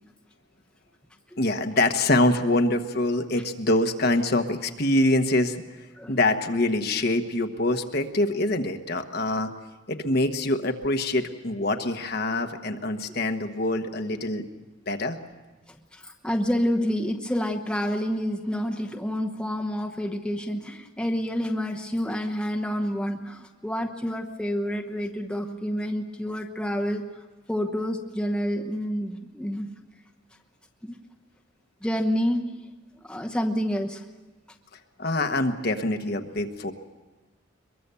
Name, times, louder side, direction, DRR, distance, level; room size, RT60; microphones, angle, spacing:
voice 1, 1.4-5.6 6.1-9.5 9.9-14.5 14.9-15.2 35.0-36.7, left 2 dB, 50° left, 6 dB, 1.2 m, -25 dB
voice 2, 15.7-27.0 27.5-29.7 30.8-31.0 31.8-32.5 33.0-34.0, equal, 5° left, 1 dB, 1.0 m, -28 dB
23.0 x 22.5 x 7.0 m, 1.2 s
head